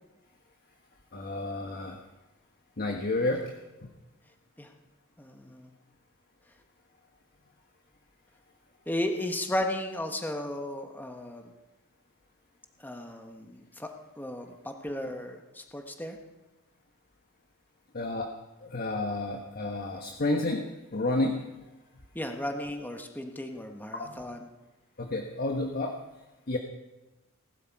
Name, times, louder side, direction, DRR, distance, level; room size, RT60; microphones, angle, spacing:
voice 1, 1.1-2.0 2.8-3.5 3.8-3.9 17.9-18.3 18.6-21.4 23.9-24.2 25.0-26.0 26.5-26.6, left 2 dB, 45° left, 3 dB, 1.2 m, -30 dB
voice 2, 5.2-5.7 8.9-11.4 12.8-13.9 14.2-16.2 22.1-24.4, left 1 dB, 10° left, 4 dB, 1.2 m, -34 dB
19.0 x 12.0 x 4.7 m, 1.0 s
head